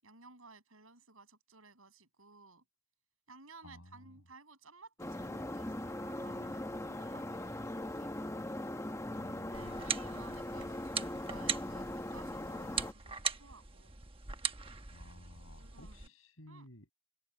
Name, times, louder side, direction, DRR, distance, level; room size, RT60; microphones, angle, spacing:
voice 1, 0.0-2.6 3.3-8.1 9.3-14.0 15.6-16.1 16.5-16.7, right 3 dB, 85° right, 7.3 m, -57 dB
voice 2, 3.6-4.1 9.1-9.9 14.9-16.9, left 1 dB, 75° left, 6.4 m, -55 dB
sound 1, 5.0-12.9, left 1 dB, 15° left, 0.9 m, -40 dB
sound 2, 9.5-16.1, right 6 dB, 25° right, 1.2 m, -40 dB
open air
head